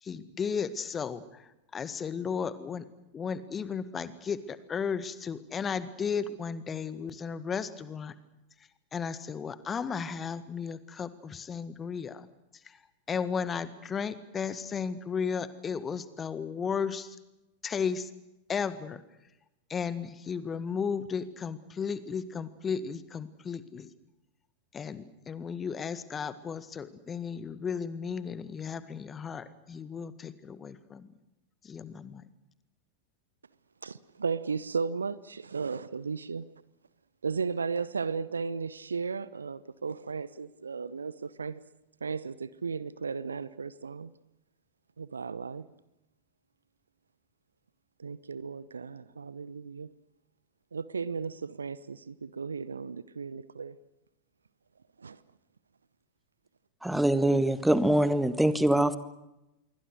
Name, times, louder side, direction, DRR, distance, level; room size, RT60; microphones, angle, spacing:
voice 1, 0.0-2.9 3.1-8.1 8.9-12.3 12.6-12.8 13.1-17.2 17.6-18.1 18.5-19.0 19.7-23.9 24.7-31.1 31.6-32.3, left 6 dB, 20° left, 1.7 m, -34 dB
voice 2, 33.8-36.5 37.2-41.6 42.0-44.1 45.0-45.7 48.0-49.9 50.7-53.8 55.0-55.2, right 5 dB, 75° right, 0.9 m, -35 dB
voice 3, 56.8-59.0, right 1 dB, 5° right, 1.6 m, -24 dB
27.0 x 23.5 x 6.5 m
figure-of-eight pair, 90°, 0 cm